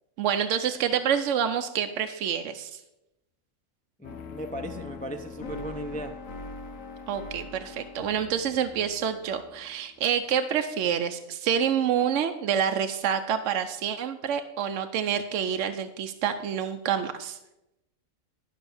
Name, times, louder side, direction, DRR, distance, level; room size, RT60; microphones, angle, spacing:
voice 1, 0.2-2.8 7.1-17.4, right 8 dB, 70° right, 7 dB, 0.9 m, -27 dB
sound 1, 4.0-10.1, left 3 dB, 75° left, 1.2 m, -42 dB
voice 2, 4.0-6.1, right 1 dB, 10° left, 5 dB, 0.4 m, -37 dB
11.5 x 5.6 x 7.0 m, 0.91 s
omnidirectional pair, 1.4 m